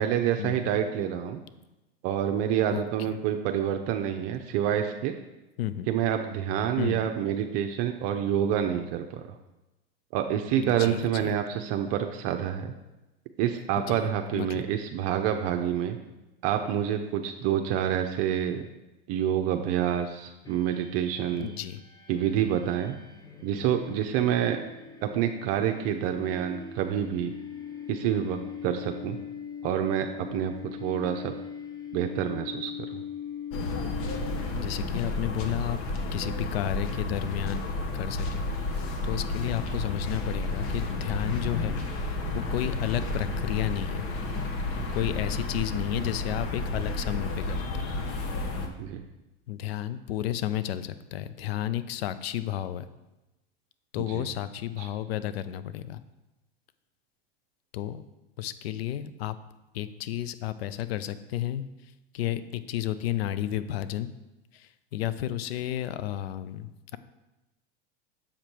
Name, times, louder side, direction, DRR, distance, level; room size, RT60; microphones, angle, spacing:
voice 1, 0.0-1.4 2.0-5.1 5.9-9.3 10.1-12.7 13.4-16.0 16.4-18.7 19.1-21.5 22.1-23.0 23.4-24.6 25.0-27.3 27.9-29.2 29.6-30.5 30.8-31.3 31.9-33.0 44.8-44.9 48.8-49.0 54.1-54.3 54.8-54.9, right 10 dB, 50° right, 5 dB, 0.6 m, -27 dB
voice 2, 6.8-7.1 10.6-11.3 13.9-14.0 14.3-14.6 21.4-21.8 34.5-35.8 36.1-37.7 37.9-38.5 39.1-44.1 44.9-47.9 49.5-52.9 53.9-56.0 57.7-58.0 58.4-59.3 59.7-61.6 62.1-64.1 64.5-67.0, left 12 dB, 85° left, 14 dB, 0.6 m, -32 dB
sound 1, 20.4-34.9, left 7 dB, 10° left, 0.8 m, -41 dB
sound 2, 33.5-48.7, left 2 dB, 45° left, 1.1 m, -31 dB
7.3 x 5.1 x 4.5 m, 1.0 s
hypercardioid pair, 110°, 30 cm